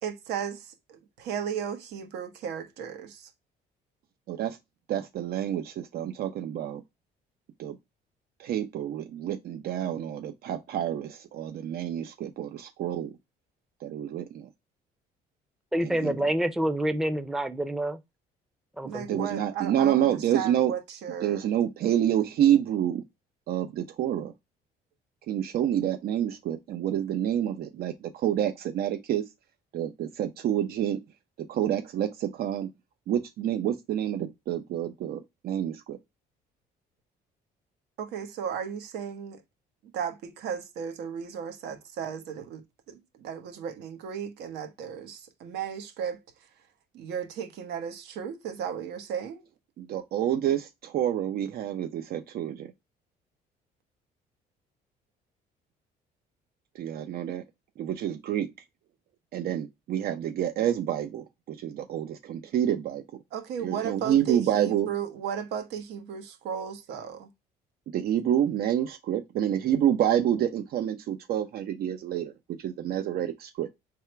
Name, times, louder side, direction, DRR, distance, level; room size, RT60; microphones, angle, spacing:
voice 1, 0.0-3.3 18.8-21.5 38.0-39.4 39.9-42.6 42.9-46.2 46.9-49.5 63.3-67.3, right 8 dB, 80° right, 1.3 m, -35 dB
voice 2, 4.9-6.8 7.6-7.7 8.4-13.1 13.8-14.5 15.8-16.2 19.1-20.7 21.2-23.0 23.5-24.3 25.3-29.2 29.7-31.0 31.5-32.7 33.1-36.0 49.8-52.7 56.7-57.4 57.8-58.5 59.3-63.0 63.6-64.9 67.9-72.3 72.6-73.7, right 10 dB, 65° right, 0.7 m, -28 dB
voice 3, 15.7-18.0 18.8-19.3, right 1 dB, ahead, 0.6 m, -28 dB
3.6 x 3.3 x 4.4 m
cardioid pair, 110°, 17 cm